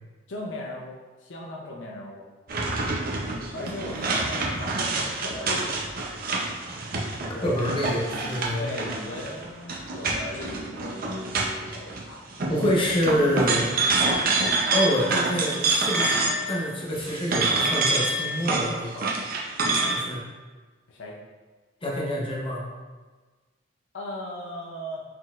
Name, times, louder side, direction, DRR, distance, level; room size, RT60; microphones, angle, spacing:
voice 1, 0.3-2.3 3.4-5.9 7.3-12.2 14.4-14.6 20.9-21.2 23.9-25.0, left 1 dB, 75° left, -1 dB, 0.6 m, -37 dB
sound 1, 2.5-12.0 12.3-16.6 16.9-20.0, right 3 dB, 50° right, 0.6 m, -27 dB
voice 2, 7.2-8.7 12.5-13.7 14.7-19.1 19.8-20.2 21.8-22.6, equal, 25° left, -3 dB, 0.8 m, -27 dB
4.5 x 3.9 x 2.4 m, 1.3 s
head